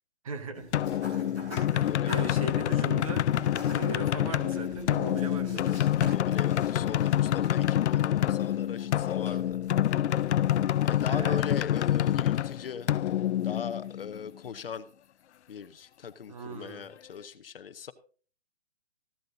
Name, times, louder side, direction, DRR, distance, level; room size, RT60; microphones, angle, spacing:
voice 1, 0.2-0.7 1.7-3.3 3.7-5.8 11.1-11.4 16.3-16.9, right 3 dB, 30° right, 1.1 m, -38 dB
sound 1, 0.5-12.5, left 1 dB, 15° right, 5.6 m, -46 dB
sound 2, 0.7-14.3, left 11 dB, 85° left, 0.5 m, -27 dB
voice 2, 1.8-2.6 6.0-9.7 10.8-13.0 13.4-14.9 15.5-17.9, left 7 dB, 55° left, 0.8 m, -39 dB
15.0 x 12.0 x 2.7 m
hypercardioid pair, 175°, 33 cm